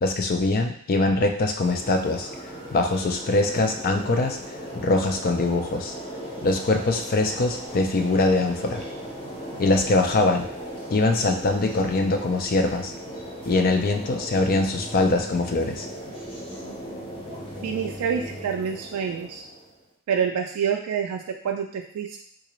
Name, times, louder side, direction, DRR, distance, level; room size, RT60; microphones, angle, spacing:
voice 1, 0.0-2.3 2.7-6.0 6.4-8.8 9.6-10.5 10.9-12.9 13.5-15.9, left 2 dB, 40° left, 4 dB, 0.4 m, -23 dB
sound 1, 1.6-19.8, equal, 25° left, 0.9 m, -37 dB
voice 2, 17.6-19.4 20.1-22.2, right 7 dB, 75° right, 2 dB, 0.3 m, -27 dB
3.7 x 2.5 x 3.0 m, 0.65 s
head